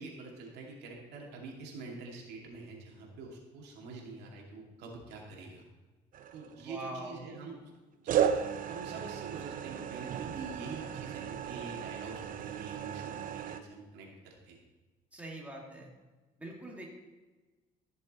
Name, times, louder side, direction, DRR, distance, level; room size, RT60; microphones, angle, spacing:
voice 1, 0.0-5.7 6.3-7.5 8.0-8.3 8.7-14.6, right 3 dB, 80° right, -1 dB, 2.4 m, -45 dB
sound 1, 6.1-6.8 8.1-13.6, right 9 dB, 55° right, 0.7 m, -35 dB
voice 2, 6.6-7.2 15.1-15.9 16.4-16.9, right 1 dB, 10° right, -2 dB, 2.2 m, -43 dB
14.0 x 6.7 x 4.2 m, 1.2 s
cardioid pair, 110°, 17 cm